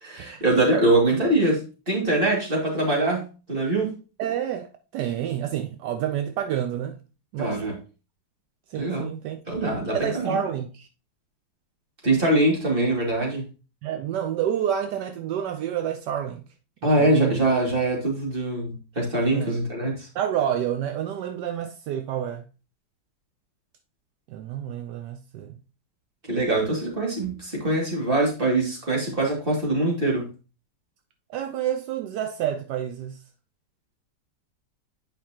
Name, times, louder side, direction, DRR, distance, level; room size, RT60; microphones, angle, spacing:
voice 1, 0.0-3.9 7.4-7.8 8.7-9.1 9.5-10.4 12.0-13.5 16.8-20.1 26.3-30.3, right 2 dB, 30° right, 2.5 m, -23 dB
voice 2, 4.2-7.0 7.3-7.7 8.7-9.4 9.9-10.9 13.8-16.4 16.8-17.4 19.3-19.6 20.1-22.4 24.3-25.6 31.3-33.2, right 10 dB, 80° right, 1.2 m, -29 dB
8.6 x 5.3 x 2.9 m
omnidirectional pair, 1.8 m